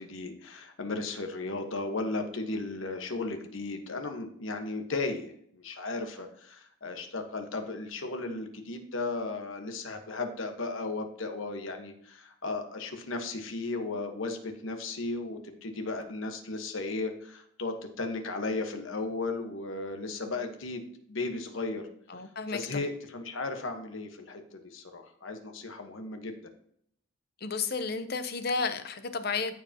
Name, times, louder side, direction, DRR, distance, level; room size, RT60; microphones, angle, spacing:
voice 1, 0.0-20.8 21.1-21.8 22.5-26.3, left 3 dB, 75° left, 5 dB, 1.2 m, -35 dB
voice 2, 22.1-22.9 27.4-29.5, left 4 dB, 50° left, 10 dB, 0.7 m, -32 dB
14.5 x 4.9 x 2.9 m, 0.65 s
head